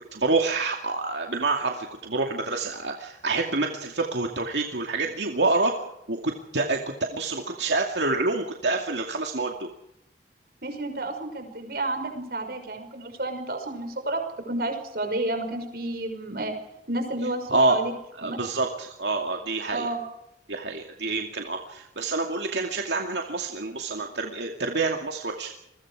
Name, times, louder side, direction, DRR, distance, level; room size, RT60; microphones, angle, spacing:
voice 1, 0.1-5.7 6.1-6.8 7.1-9.7 17.5-17.8 18.2-19.9 20.5-25.5, right 3 dB, 80° right, 2 dB, 2.4 m, -27 dB
voice 2, 10.6-16.5 16.9-17.9 18.2-18.4 19.7-20.0, right 2 dB, 60° right, 5 dB, 5.9 m, -31 dB
28.5 x 22.5 x 4.9 m, 0.84 s
head